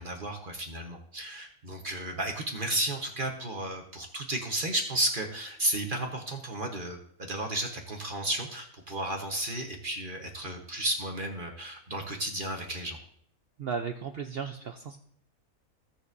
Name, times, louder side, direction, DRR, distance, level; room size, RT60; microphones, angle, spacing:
voice 1, 0.0-13.0, right 1 dB, 40° right, 3 dB, 1.1 m, -33 dB
voice 2, 13.6-15.0, right 6 dB, 60° right, 6 dB, 0.6 m, -35 dB
16.0 x 6.8 x 2.6 m, 0.64 s
omnidirectional pair, 1.5 m